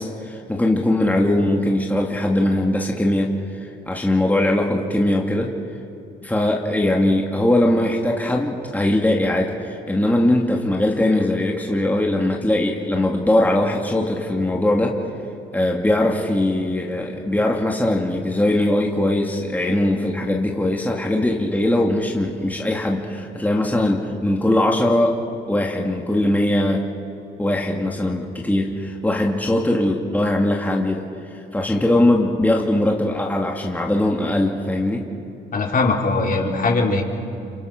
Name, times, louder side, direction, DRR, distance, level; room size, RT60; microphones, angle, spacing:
voice 1, 0.0-5.5 6.2-14.9 15.5-25.2 25.5-26.9 27.4-31.0 31.3-35.1, left 1 dB, 10° left, -1 dB, 2.5 m, -20 dB
voice 2, 35.5-37.0, left 3 dB, 45° left, 1 dB, 3.8 m, -20 dB
30.0 x 26.0 x 6.1 m, 2.9 s
cardioid pair, 90°, 20 cm